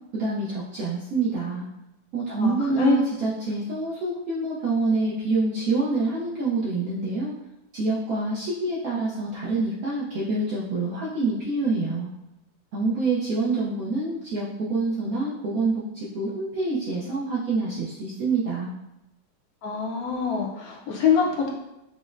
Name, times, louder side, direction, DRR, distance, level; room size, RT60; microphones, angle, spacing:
voice 1, 0.1-1.7 2.1-7.3 7.7-12.1 12.7-18.7, right 3 dB, 65° right, -7 dB, 0.9 m, -26 dB
voice 2, 2.4-3.0 19.6-21.5, left 6 dB, 65° left, -1 dB, 0.9 m, -24 dB
5.0 x 2.1 x 2.4 m, 0.90 s
omnidirectional pair, 2.0 m